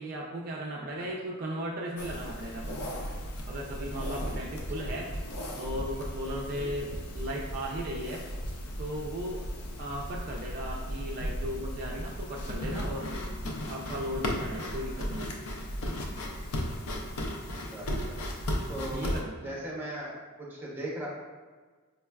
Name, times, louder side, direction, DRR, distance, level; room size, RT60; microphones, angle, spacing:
voice 1, 0.0-2.8 3.5-5.1 5.6-8.2 8.8-9.5 9.8-13.1 13.7-15.4 18.9-19.6, equal, 40° right, -2 dB, 0.3 m, -36 dB
sound 1, 2.0-19.2, equal, 75° left, 0.5 m, -36 dB
voice 2, 17.7-18.2 18.7-19.1 19.4-20.1 20.4-21.1, right 1 dB, 10° right, -5 dB, 0.7 m, -38 dB
5.1 x 2.2 x 2.2 m, 1.4 s
head